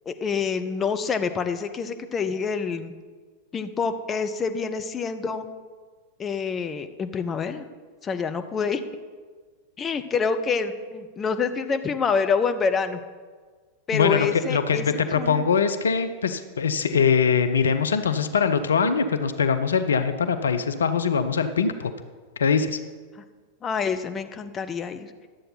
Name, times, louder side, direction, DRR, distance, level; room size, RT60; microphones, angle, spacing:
voice 1, 0.1-2.9 3.5-5.4 6.2-7.7 8.0-8.8 9.8-13.0 13.9-14.9 15.1-15.4 23.6-25.1, left 5 dB, 25° left, 8 dB, 0.6 m, -27 dB
voice 2, 13.9-21.9 22.4-22.8, left 6 dB, 70° left, 10 dB, 0.5 m, -22 dB
11.0 x 7.8 x 4.0 m, 1.5 s
figure-of-eight pair, 90°, 0 cm